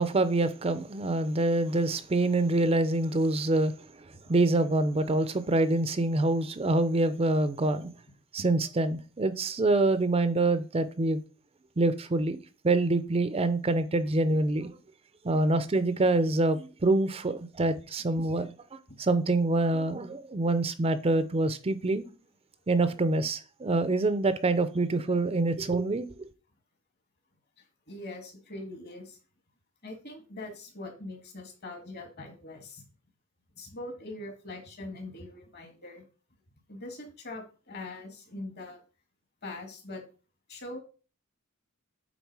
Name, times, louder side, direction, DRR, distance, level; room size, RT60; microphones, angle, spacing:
voice 1, 0.0-7.9 8.3-11.2 11.8-12.4 12.6-14.7 15.2-22.0 22.7-26.3, right 2 dB, 30° right, 0.5 m, -26 dB
voice 2, 27.6-29.2 29.8-32.8 33.6-36.0 36.7-38.8 39.4-40.0 40.5-40.8, left 2 dB, 50° left, 1.9 m, -42 dB
8.1 x 3.8 x 4.7 m
head